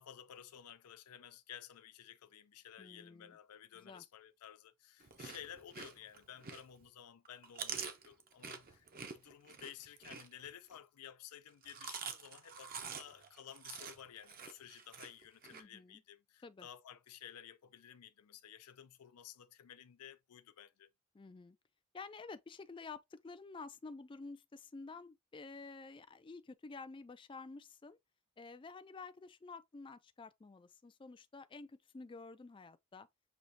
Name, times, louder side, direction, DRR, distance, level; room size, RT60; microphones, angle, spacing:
voice 1, 0.0-20.9, left 10 dB, 90° left, 0.4 m, -54 dB
voice 2, 2.8-3.4 3.7-4.0 15.5-16.0 16.4-16.7 21.1-21.6 21.9-28.0 28.4-33.1, left 4 dB, 20° left, 0.3 m, -50 dB
Chewing mastication, 5.0-6.9 7.2-10.8 11.5-15.6, right 6 dB, 40° right, 0.7 m, -47 dB
6.3 x 3.0 x 2.6 m
head